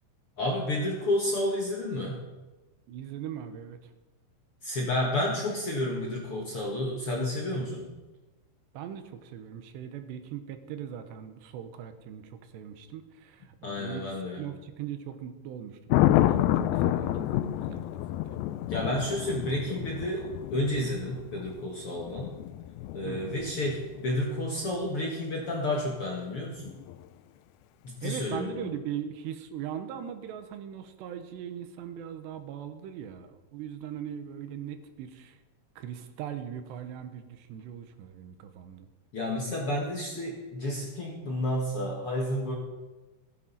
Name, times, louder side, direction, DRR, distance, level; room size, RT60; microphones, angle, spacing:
voice 1, 0.4-2.2 4.6-7.9 13.6-14.4 18.7-22.3 22.9-26.7 27.8-28.7 39.1-42.6, left 1 dB, 50° left, -1 dB, 1.7 m, -31 dB
voice 2, 2.9-3.9 8.7-18.2 23.0-23.4 28.0-35.4 35.8-38.9, right 9 dB, 85° right, 9 dB, 3.2 m, -40 dB
Thunder, 15.9-24.0 26.7-27.0, left 13 dB, 85° left, 2.1 m, -29 dB
15.5 x 10.0 x 5.5 m, 1.2 s
omnidirectional pair, 4.9 m